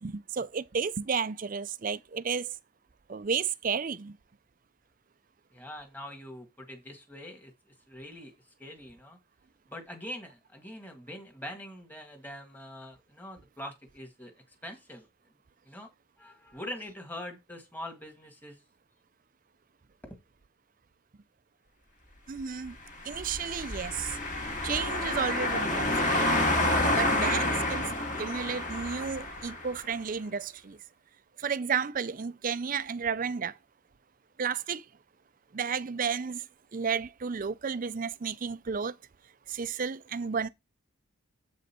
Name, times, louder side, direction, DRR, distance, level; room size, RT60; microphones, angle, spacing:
voice 1, 0.0-2.6 3.1-4.2 22.3-22.8 23.0-24.2 24.6-26.5 26.9-27.9 28.2-30.8 31.4-33.6 34.4-34.9 35.5-36.4 36.7-39.0 39.5-40.5, right 6 dB, 40° right, 0.4 m, -32 dB
voice 2, 5.5-9.2 9.7-15.1 15.6-15.9 16.2-18.6 20.0-20.2, left 1 dB, 10° left, 1.6 m, -44 dB
sound 1, 23.0-29.8, left 1 dB, 35° left, 1.9 m, -29 dB
7.7 x 5.2 x 4.3 m
head